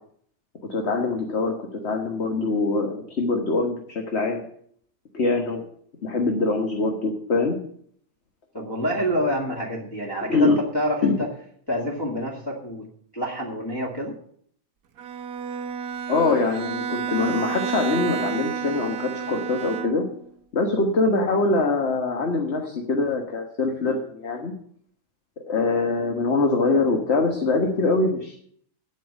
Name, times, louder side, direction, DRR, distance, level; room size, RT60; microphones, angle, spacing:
voice 1, 0.7-4.4 5.1-5.6 6.0-7.6 10.3-10.6 11.0-11.2 16.1-20.0 20.5-24.5 25.5-28.4, left 3 dB, 50° left, 2 dB, 1.7 m, -23 dB
voice 2, 8.5-11.1 11.7-12.9 13.1-14.2, equal, 15° left, -5 dB, 2.2 m, -27 dB
Bowed string instrument, 15.0-20.3, right 6 dB, 80° right, 1.3 m, -30 dB
9.0 x 8.1 x 9.3 m, 0.62 s
omnidirectional pair, 1.5 m